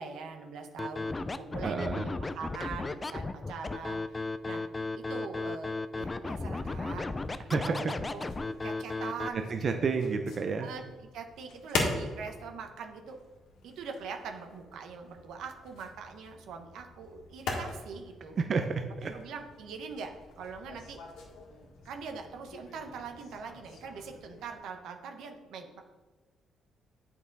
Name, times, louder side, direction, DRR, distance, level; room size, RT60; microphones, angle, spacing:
voice 1, 0.0-4.6 5.0-7.1 7.4-7.8 8.1-8.3 8.6-9.5 10.6-13.2 13.6-18.4 19.1-21.0 21.8-25.8, right 5 dB, 80° right, 4 dB, 1.0 m, -42 dB
Scratching (performance technique), 0.8-9.3, left 3 dB, 25° left, 0.4 m, -35 dB
voice 2, 1.6-2.1 7.5-7.9 9.5-10.7 18.4-19.2, right 4 dB, 50° right, 5 dB, 0.6 m, -30 dB
sound 1, 6.5-24.6, left 3 dB, 90° left, 1.7 m, -42 dB
8.4 x 5.9 x 4.0 m, 1.3 s
cardioid pair, 90°, 0 cm